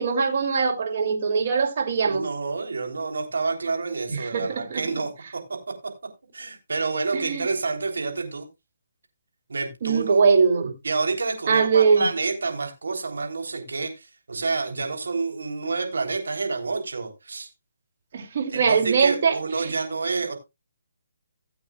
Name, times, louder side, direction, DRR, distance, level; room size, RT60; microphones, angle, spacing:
voice 1, 0.0-2.3 4.1-4.8 7.1-7.5 9.8-10.7 11.5-12.1 18.1-19.7, right 5 dB, 50° right, 2.5 m, -22 dB
voice 2, 2.1-5.4 6.3-8.5 9.5-10.2 10.8-17.5 18.5-20.3, right 4 dB, 80° right, 3.2 m, -28 dB
17.0 x 8.4 x 2.3 m
hypercardioid pair, 150°, 0 cm